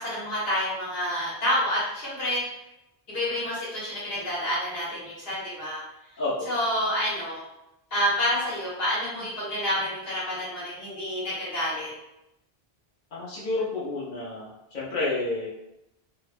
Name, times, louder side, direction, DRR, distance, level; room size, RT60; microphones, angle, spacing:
voice 1, 0.0-2.4 3.1-5.8 6.5-7.4 7.9-11.9, equal, 75° left, -8 dB, 1.3 m, -28 dB
voice 2, 6.2-6.5 13.1-14.5 14.7-15.5, left 2 dB, 55° left, -10 dB, 1.0 m, -29 dB
2.8 x 2.1 x 2.5 m, 0.86 s
omnidirectional pair, 1.0 m